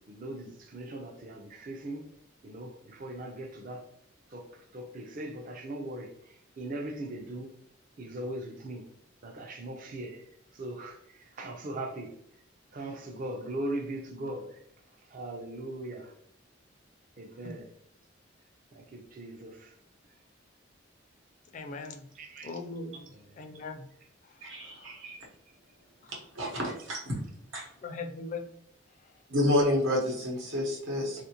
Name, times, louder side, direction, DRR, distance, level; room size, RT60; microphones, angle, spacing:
voice 1, 0.1-2.1 2.4-3.8 4.3-7.5 8.0-8.9 9.2-12.1 12.7-14.6 15.0-16.1 17.2-17.7 18.7-19.8 20.1-20.2 22.2-22.6 23.1-23.6 25.0-25.2, right 1 dB, 45° right, 3 dB, 0.4 m, -40 dB
voice 2, 21.5-22.1 22.4-23.1 23.4-23.9 24.2-24.9 26.0-26.1 27.8-28.5, left 3 dB, 40° left, 5 dB, 0.3 m, -40 dB
voice 3, 24.4-25.2 26.1-27.1 27.5-27.7 29.3-31.2, left 1 dB, 85° right, -2 dB, 1.0 m, -29 dB
3.3 x 2.5 x 2.8 m, 0.69 s
head